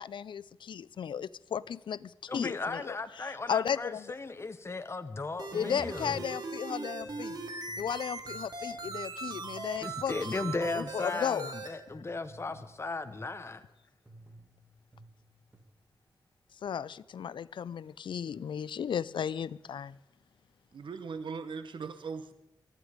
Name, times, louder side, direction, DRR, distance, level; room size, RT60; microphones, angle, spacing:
voice 1, 0.0-4.1 5.5-7.4 7.8-11.5 16.6-20.0, left 8 dB, 80° left, 0.4 m, -35 dB
voice 2, 2.3-6.1 9.8-13.6, left 3 dB, 30° left, 0.9 m, -36 dB
sound 1, 5.4-11.7, right 3 dB, 55° right, 2.4 m, -40 dB
sound 2, 7.0-11.1 11.9-13.5 14.1-15.6, right 1 dB, 20° right, 2.1 m, -55 dB
voice 3, 20.7-22.3, right 5 dB, 80° right, 0.9 m, -39 dB
18.5 x 13.0 x 5.0 m
wide cardioid pair, 115°, 8 cm